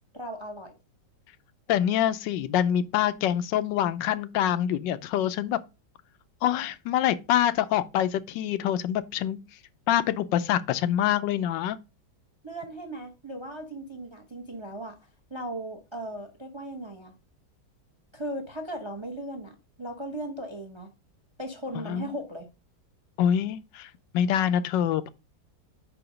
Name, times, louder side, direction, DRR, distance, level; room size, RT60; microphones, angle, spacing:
voice 1, 0.1-0.7 12.4-15.0 15.3-17.1 18.1-20.9 21.4-22.5, right 1 dB, 25° right, 0.6 m, -37 dB
voice 2, 1.7-5.6 6.4-9.4 9.9-11.8 21.7-22.1 23.2-25.1, left 10 dB, 85° left, 1.3 m, -25 dB
5.1 x 4.9 x 4.9 m
omnidirectional pair, 1.9 m